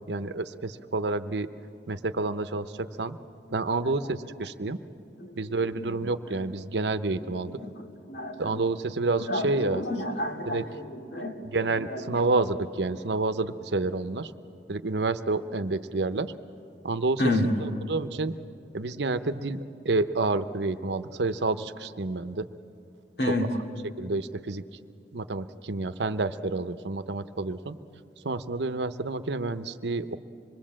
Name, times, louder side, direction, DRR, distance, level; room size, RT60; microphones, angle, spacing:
voice 1, 0.1-1.5 1.9-3.2 3.5-4.8 5.4-7.6 8.4-9.8 10.5-10.6 11.4-14.3 14.7-16.3 16.8-17.2 17.9-18.3 18.7-22.5 24.0-24.6 25.1-27.8 28.2-30.2, right 3 dB, 75° right, 11 dB, 0.8 m, -29 dB
voice 2, 5.2-6.0 6.3-6.4 7.3-8.6 9.2-12.3 17.2-17.5 23.2-23.5, left 1 dB, 65° left, 1 dB, 2.5 m, -31 dB
26.0 x 21.5 x 7.5 m, 2.6 s
head